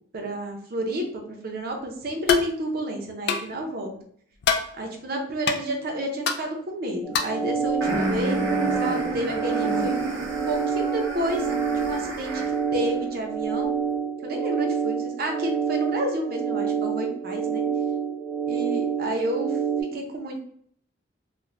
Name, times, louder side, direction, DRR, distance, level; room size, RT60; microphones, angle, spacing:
voice 1, 0.1-3.9 4.8-9.9 10.5-11.5 11.7-12.4 12.7-13.7 14.2-17.6 18.5-19.6 19.9-20.4, right 1 dB, 50° right, 2 dB, 0.6 m, -30 dB
sound 1, 2.3-2.5 3.3-3.5 4.4-4.7 5.5-5.6 6.3-6.4 7.1-7.4, left 5 dB, 60° left, 0.3 m, -23 dB
sound 2, 7.0-19.8, right 6 dB, 5° left, 0.7 m, -27 dB
sound 3, 7.8-12.7, right 1 dB, 90° right, 0.7 m, -30 dB
2.4 x 2.1 x 3.2 m, 0.64 s
head